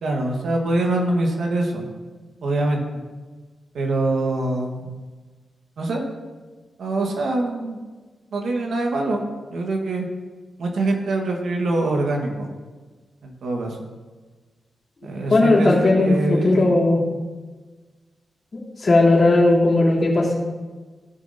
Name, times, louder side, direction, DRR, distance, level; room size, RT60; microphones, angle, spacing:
voice 1, 0.0-1.9 2.4-3.0 3.7-4.9 5.8-6.0 6.8-7.8 8.3-9.2 9.5-10.1 10.6-12.5 13.2-13.8 15.0-16.8, right 2 dB, 80° right, 1 dB, 1.6 m, -24 dB
voice 2, 15.3-17.0 18.8-20.4, left 2 dB, 45° left, -6 dB, 3.4 m, -17 dB
16.5 x 6.5 x 2.8 m, 1.3 s
cardioid pair, 95°, 0 cm